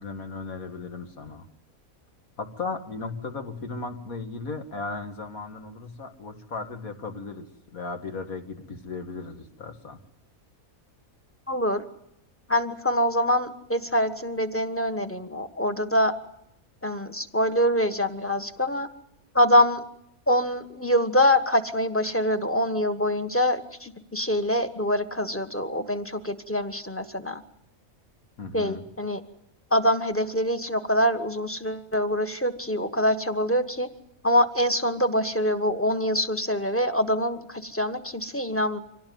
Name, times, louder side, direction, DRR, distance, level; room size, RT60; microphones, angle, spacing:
voice 1, 0.0-1.5 2.4-10.0 28.4-28.8, left 3 dB, 75° left, 6 dB, 2.5 m, -36 dB
voice 2, 11.5-11.8 12.5-16.1 16.8-18.9 19.3-19.8 20.3-27.4 28.5-29.2 29.7-33.9 34.2-38.8, equal, 10° left, 8 dB, 1.3 m, -24 dB
25.5 x 17.5 x 9.5 m, 0.80 s
omnidirectional pair, 1.5 m